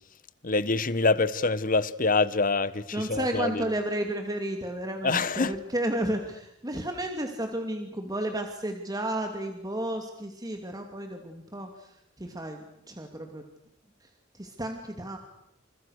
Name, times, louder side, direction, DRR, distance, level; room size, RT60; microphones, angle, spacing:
voice 1, 0.4-3.7 5.0-5.6, left 3 dB, 45° left, 1.3 m, -25 dB
voice 2, 2.9-11.9 12.2-13.4 14.3-15.2, right 1 dB, 20° right, 2.6 m, -32 dB
30.0 x 28.0 x 6.6 m
head